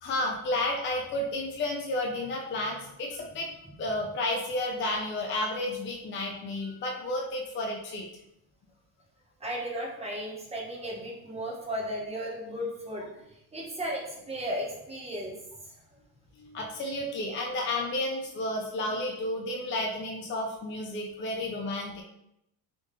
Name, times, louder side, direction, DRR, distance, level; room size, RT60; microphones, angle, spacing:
voice 1, 0.0-3.5 3.8-8.0 16.4-22.0, left 1 dB, 25° left, 0 dB, 0.5 m, -31 dB
voice 2, 9.4-13.1 13.5-15.3, equal, 15° right, -3 dB, 1.1 m, -35 dB
3.7 x 2.6 x 3.6 m, 0.81 s
cardioid pair, 125°, 45 cm